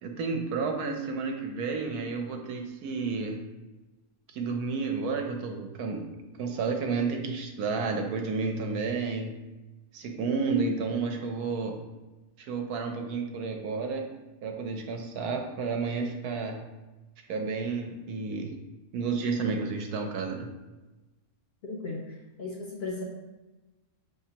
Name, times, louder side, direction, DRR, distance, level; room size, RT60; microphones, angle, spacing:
voice 1, 0.0-3.4 4.3-6.1 6.4-9.3 9.9-11.8 12.4-14.1 14.4-16.6 17.3-18.5 18.9-20.5, right 4 dB, 80° right, 3 dB, 1.2 m, -31 dB
voice 2, 21.6-23.0, left 3 dB, 60° left, -1 dB, 0.7 m, -36 dB
5.8 x 3.2 x 2.8 m, 1.1 s
omnidirectional pair, 1.6 m